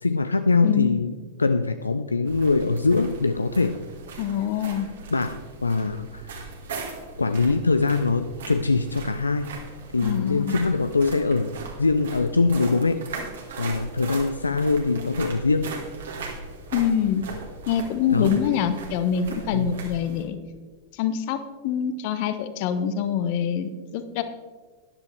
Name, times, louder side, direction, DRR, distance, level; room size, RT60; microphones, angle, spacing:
voice 1, 0.0-1.1 1.4-3.8 5.1-6.3 7.2-9.5 9.9-11.5 11.8-13.0 13.6-15.7 18.1-18.3 19.5-19.8, left 3 dB, 80° left, 10 dB, 0.4 m, -23 dB
sound 1, 2.2-20.2, right 4 dB, 65° right, 1.9 m, -39 dB
voice 2, 4.2-4.9 10.0-10.6 16.7-17.2 17.7-20.4 20.9-24.2, left 8 dB, 45° left, 11 dB, 0.9 m, -25 dB
13.0 x 10.5 x 3.5 m, 1.4 s
figure-of-eight pair, 90°, 0 cm